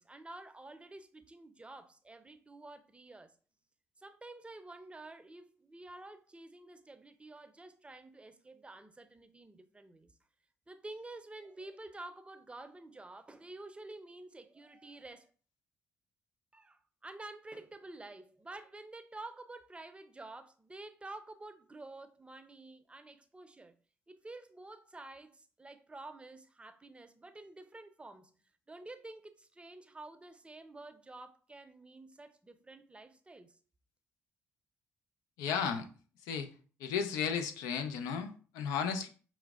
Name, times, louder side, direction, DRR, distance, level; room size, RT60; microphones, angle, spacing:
voice 1, 0.0-3.3 4.0-10.1 10.7-15.3 16.5-23.7 24.1-28.4 28.7-33.6, right 2 dB, 20° right, 0.5 m, -50 dB
voice 2, 35.4-35.9 36.2-36.5 36.8-39.1, left 6 dB, 85° left, 0.5 m, -34 dB
5.7 x 2.0 x 2.3 m
supercardioid pair, 60°, 6 cm